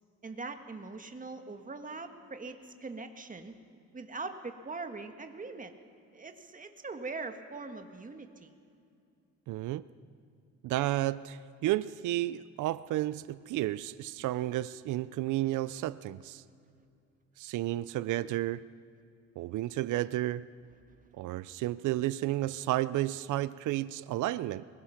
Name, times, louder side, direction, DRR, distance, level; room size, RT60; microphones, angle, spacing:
voice 1, 0.2-3.5 3.9-5.7 6.1-8.5, right 3 dB, 25° right, 1.8 m, -42 dB
voice 2, 9.5-9.8 10.6-16.4 17.4-18.6 19.4-20.5 21.1-24.6, right 15 dB, 80° right, 0.5 m, -32 dB
23.5 x 21.0 x 5.9 m
cardioid pair, 90°, 30 cm